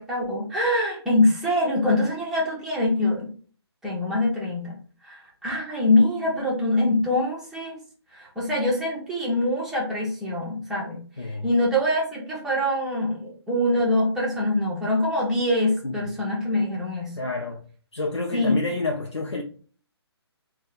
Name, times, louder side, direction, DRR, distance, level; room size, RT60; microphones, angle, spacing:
voice 1, 0.0-3.3 3.8-4.8 5.0-7.8 8.1-11.0 11.4-17.1 18.3-18.6, left 1 dB, 5° right, 0.9 m, -24 dB
voice 2, 11.2-11.5 15.8-16.1 17.2-17.6 17.9-19.4, left 2 dB, 80° left, 0.5 m, -29 dB
3.1 x 2.3 x 3.9 m
figure-of-eight pair, 140°, 14 cm